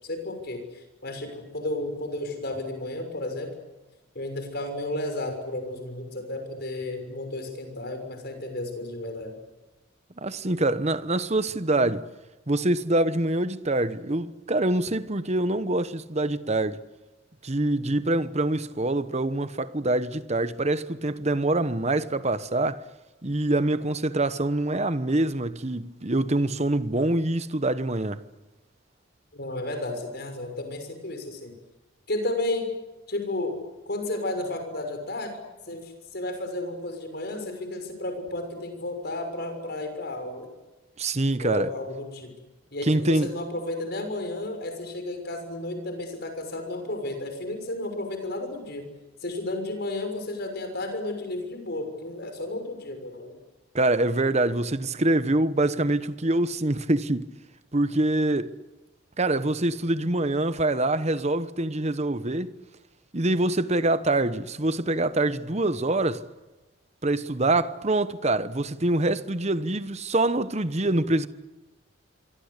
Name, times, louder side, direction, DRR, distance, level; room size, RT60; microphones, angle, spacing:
voice 1, 0.0-3.5 4.1-9.3 29.3-31.5 32.1-32.7 33.1-33.6 33.9-35.4 35.7-40.5 41.4-42.3 42.7-48.8 49.2-53.4, left 2 dB, 50° left, 6.4 m, -32 dB
voice 2, 10.2-12.0 12.5-16.8 17.4-22.8 23.2-28.2 41.0-41.7 42.8-43.3 53.7-57.2 57.7-58.5 59.2-62.5 63.1-66.2 67.0-71.3, right 2 dB, 35° right, 1.0 m, -25 dB
27.0 x 24.0 x 8.3 m
head